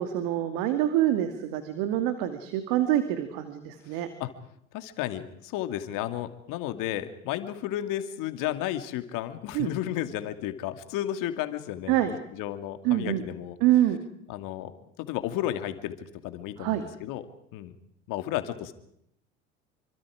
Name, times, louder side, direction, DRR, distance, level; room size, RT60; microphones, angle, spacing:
voice 1, 0.0-4.1 9.5-9.7 11.9-12.1 12.8-13.2 13.6-14.0 16.6-16.8, right 13 dB, 65° right, 8 dB, 2.5 m, -25 dB
voice 2, 3.9-4.3 4.7-13.6 14.3-14.7 15.0-15.9 16.2-17.2 17.5-17.7 18.1-18.7, left 12 dB, 60° left, 9 dB, 2.4 m, -33 dB
27.5 x 25.0 x 5.0 m, 0.74 s
hypercardioid pair, 75°, 37 cm